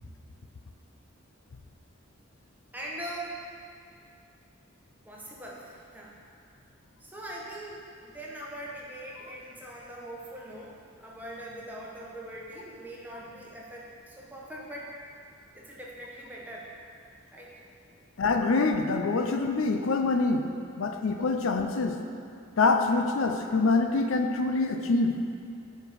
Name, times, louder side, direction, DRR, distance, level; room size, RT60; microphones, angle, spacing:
voice 1, 2.7-3.4 5.0-6.1 7.0-14.9 15.5-16.7 17.3-17.6 18.0-18.1 20.9-21.1, right 1 dB, 10° right, -4 dB, 1.0 m, -42 dB
voice 2, 18.2-20.5 20.8-22.0 22.6-25.1, left 3 dB, 85° left, 5 dB, 0.5 m, -25 dB
8.3 x 4.4 x 5.0 m, 2.5 s
head